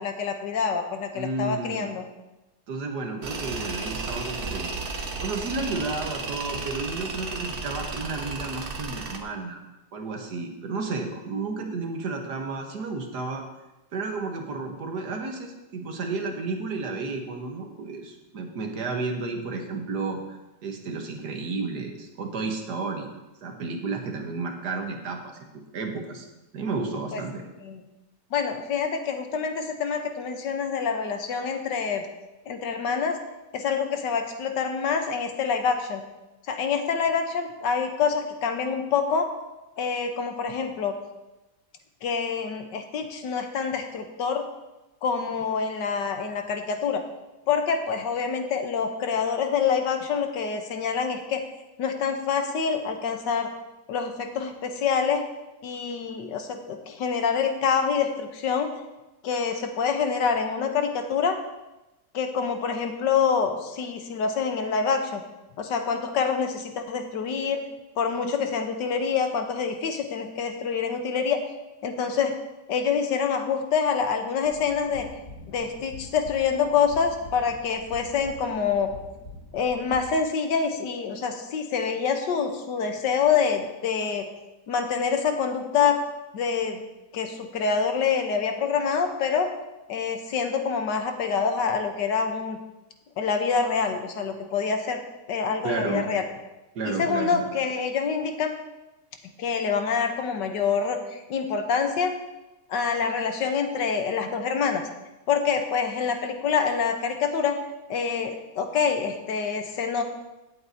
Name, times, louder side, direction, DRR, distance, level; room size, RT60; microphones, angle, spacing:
voice 1, 0.0-2.1 27.1-27.2 27.6-27.8 28.3-32.0 32.5-33.2 33.5-36.0 36.5-39.3 39.8-41.0 42.0-44.4 45.0-47.0 47.5-51.4 51.8-53.5 53.9-55.2 55.6-58.7 59.2-61.4 62.1-65.2 65.6-67.6 68.0-71.4 71.8-72.3 72.7-75.1 75.5-78.9 79.5-84.3 84.7-86.0 86.3-86.8 87.1-89.5 89.9-92.6 93.2-95.0 95.3-96.2 96.8-98.5 99.4-102.1 102.7-104.8 105.3-107.6 107.9-110.0, left 6 dB, 85° left, 5 dB, 1.6 m, -26 dB
voice 2, 1.1-2.0 2.7-4.7 5.2-9.6 9.9-13.4 13.9-23.1 23.4-25.4 25.7-26.3 26.5-27.4 95.6-96.1 96.8-97.5, right 3 dB, 70° right, 3 dB, 1.8 m, -32 dB
Tools, 3.2-9.2, right 3 dB, 40° right, 0.9 m, -33 dB
sound 1, 74.4-80.0, left 2 dB, 55° left, 1.9 m, -45 dB
17.0 x 7.9 x 2.8 m, 1.0 s
omnidirectional pair, 1.8 m